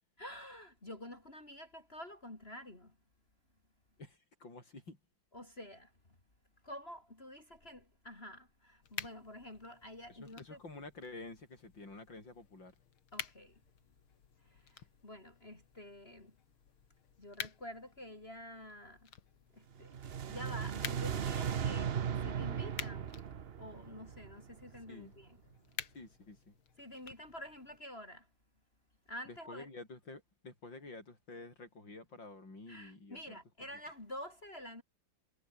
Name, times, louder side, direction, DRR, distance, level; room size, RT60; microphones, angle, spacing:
voice 1, 0.2-3.0 5.3-5.9 6.6-10.6 13.1-13.6 14.4-16.4 17.2-19.1 19.5-23.1 23.6-25.4 26.8-28.3 29.1-29.7 32.7-34.8, left 1 dB, 25° left, 4.2 m, -49 dB
voice 2, 4.0-5.0 10.1-12.7 24.9-25.2 25.9-26.6 29.3-33.4, left 2 dB, 60° left, 7.8 m, -50 dB
sound 1, 8.8-27.8, left 8 dB, 85° left, 2.7 m, -51 dB
sound 2, 19.8-24.9, right 8 dB, 65° right, 0.5 m, -37 dB
omnidirectional pair, 2.3 m